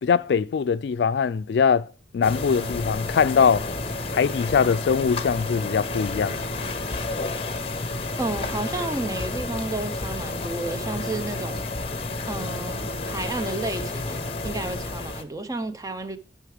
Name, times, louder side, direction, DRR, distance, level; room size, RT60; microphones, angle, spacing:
voice 1, 0.0-1.9 2.1-3.7 4.1-6.4, left 6 dB, 80° left, 0.3 m, -22 dB
sound 1, 2.2-15.2, left 2 dB, 35° left, 0.8 m, -31 dB
voice 2, 8.2-11.7 12.3-16.2, right 2 dB, 20° right, 0.6 m, -31 dB
11.0 x 5.7 x 4.9 m
head